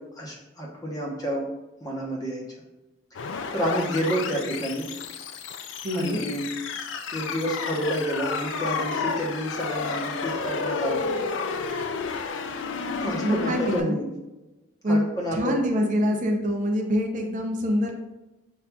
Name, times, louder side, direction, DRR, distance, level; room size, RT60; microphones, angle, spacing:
voice 1, 0.0-1.5 1.8-2.4 3.5-4.9 5.9-6.5 7.1-11.1 13.0-14.0 14.9-15.8, equal, 20° left, -3 dB, 0.9 m, -29 dB
sound 1, 3.1-13.8, left 5 dB, 70° left, 0.3 m, -31 dB
voice 2, 5.8-6.2 13.2-14.0 14.8-15.1 15.3-17.9, equal, 40° right, 2 dB, 0.5 m, -25 dB
7.0 x 2.5 x 2.2 m, 1.0 s
head